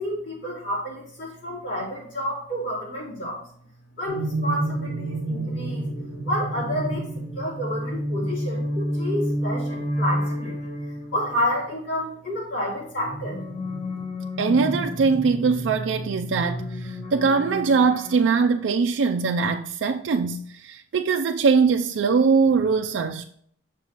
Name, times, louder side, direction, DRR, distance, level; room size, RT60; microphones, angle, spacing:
voice 1, 0.0-3.5 4.0-5.8 6.2-7.1 7.3-10.5 11.1-13.4, equal, 80° left, 3.1 m, -29 dB
sound 1, 4.1-11.5 12.8-18.7, equal, 60° left, 2.5 m, -30 dB
voice 2, 14.4-23.2, right 5 dB, 75° right, 0.4 m, -22 dB
7.1 x 6.8 x 2.9 m
head